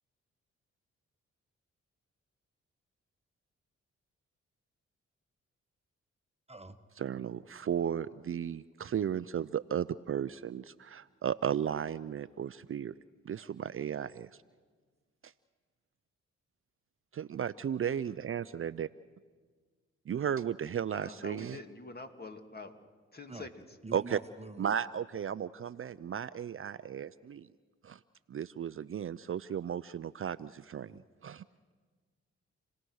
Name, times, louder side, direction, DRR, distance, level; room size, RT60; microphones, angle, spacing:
voice 1, 7.0-12.9 13.3-14.3 15.2-15.3 17.1-18.9 20.1-21.6 23.9-24.2 24.6-27.5 27.8-28.0 28.3-30.9 31.2-31.4, right 8 dB, 45° right, 15 dB, 0.6 m, -35 dB
voice 2, 20.9-22.7 23.1-23.5 30.8-31.0, left 3 dB, 30° left, 6 dB, 2.5 m, -46 dB
voice 3, 23.8-24.7, right 3 dB, 20° right, 8 dB, 1.2 m, -45 dB
29.0 x 18.0 x 6.4 m, 1.5 s
supercardioid pair, 50°, 30 cm